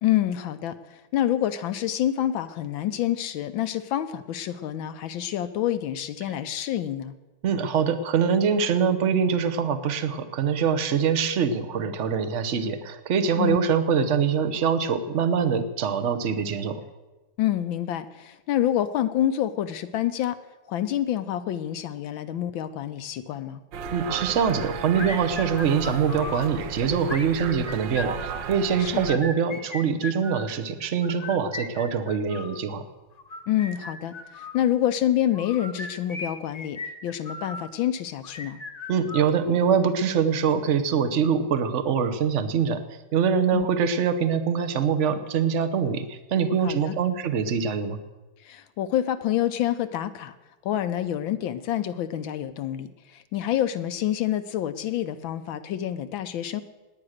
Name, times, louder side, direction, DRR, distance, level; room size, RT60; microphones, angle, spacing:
voice 1, 0.0-7.1 13.4-13.6 17.4-20.4 20.7-23.6 28.8-29.2 33.5-38.6 43.5-43.7 46.6-46.9 48.4-50.4 50.6-56.6, left 11 dB, 75° left, 11 dB, 1.4 m, -27 dB
voice 2, 7.4-16.8 23.9-32.8 38.9-42.8 43.1-48.0, right 6 dB, 45° right, 11 dB, 1.0 m, -24 dB
sound 1, 23.7-29.1, right 6 dB, 65° right, 1.5 m, -34 dB
sound 2, 24.9-26.5 27.0-28.5 29.0-30.5 31.0-32.6 33.2-34.6 35.3-37.7 38.2-39.7, left 3 dB, 25° left, 0.9 m, -37 dB
19.5 x 9.1 x 6.5 m, 1.1 s
omnidirectional pair, 2.4 m